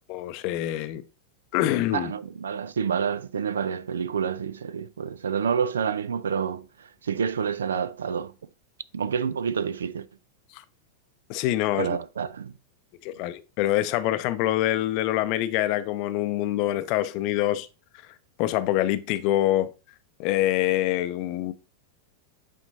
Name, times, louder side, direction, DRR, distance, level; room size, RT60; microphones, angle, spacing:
voice 1, 0.1-1.0 1.5-2.1 10.5-10.6 11.3-12.0 13.0-17.7 18.4-19.7 20.2-21.5, left 14 dB, 45° left, 0.5 m, -25 dB
voice 2, 1.9-8.3 8.9-10.1 11.8-12.5, right 7 dB, 70° right, 0.3 m, -28 dB
8.7 x 4.5 x 2.7 m
figure-of-eight pair, 90°, 0 cm